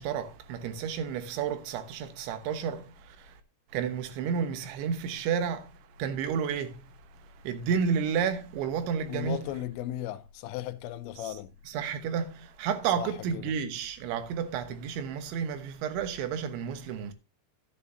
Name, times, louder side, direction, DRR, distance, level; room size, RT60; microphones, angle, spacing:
voice 1, 0.0-3.4 3.7-6.9 7.4-9.5 11.3-11.4 11.7-17.1, right 7 dB, 90° right, 3.6 m, -31 dB
voice 2, 9.1-11.5 13.0-13.5, left 13 dB, 80° left, 3.0 m, -36 dB
13.0 x 8.5 x 2.7 m
omnidirectional pair, 5.2 m